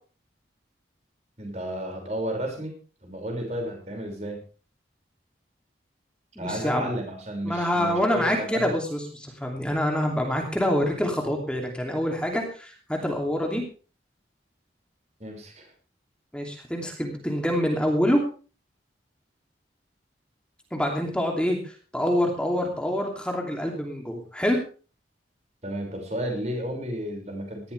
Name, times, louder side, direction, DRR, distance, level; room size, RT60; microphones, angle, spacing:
voice 1, 1.4-2.7 3.0-4.4 6.4-8.7 15.2-15.7 25.6-27.7, equal, 35° right, 2 dB, 6.0 m, -32 dB
voice 2, 6.4-6.9 7.4-13.6 16.3-18.2 20.7-24.6, equal, 5° left, 1 dB, 2.8 m, -26 dB
19.0 x 14.0 x 3.4 m, 0.37 s
head